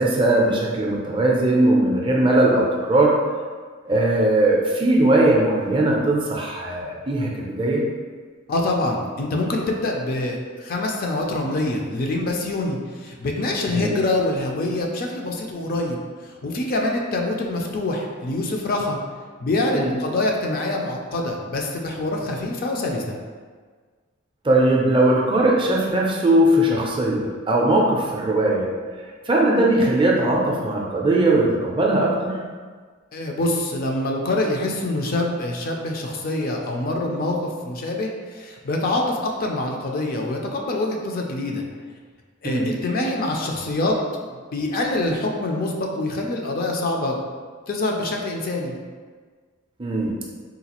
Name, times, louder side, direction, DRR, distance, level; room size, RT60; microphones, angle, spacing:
voice 1, 0.0-3.2 3.9-7.8 13.7-13.9 19.7-19.9 24.4-28.7 29.3-32.4 42.4-42.7 49.8-50.2, right 1 dB, 25° right, -2 dB, 0.4 m, -19 dB
voice 2, 8.5-16.0 16.2-19.0 19.4-23.2 33.1-41.6 42.4-44.0 44.3-47.2 47.7-48.7, left 2 dB, 45° left, 1 dB, 0.4 m, -25 dB
3.9 x 2.3 x 2.9 m, 1.5 s
head